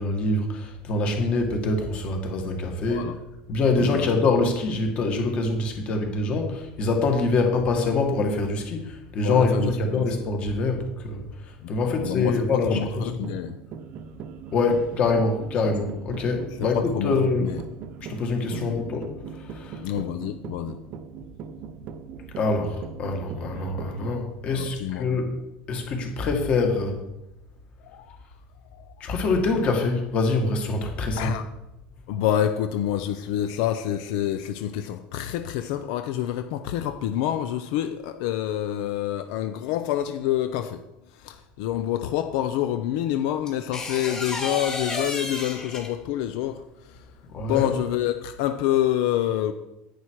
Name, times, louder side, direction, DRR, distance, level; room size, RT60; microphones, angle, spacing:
voice 1, 0.0-3.1 3.5-13.3 14.5-17.6 18.1-19.0 19.3-19.8 22.4-25.3 25.7-27.0 29.0-31.4 47.3-47.7, left 3 dB, 30° left, 3 dB, 1.9 m, -25 dB
voice 2, 9.2-10.1 11.6-11.8 12.0-12.4 12.7-13.5 16.7-17.1 17.4-17.6 19.8-20.8 24.5-25.0 27.9-28.2 28.7-28.8 31.2-31.4 32.1-40.8 41.2-46.6 46.9-47.0 47.4-49.5, left 11 dB, 75° left, 9 dB, 0.7 m, -27 dB
sound 1, 12.0-24.2, right 7 dB, 40° right, 0.7 m, -40 dB
sound 2, 43.5-46.2 47.9-48.1, left 3 dB, 15° left, 1.8 m, -31 dB
10.0 x 10.0 x 4.8 m, 0.94 s
cardioid pair, 175°, 4 cm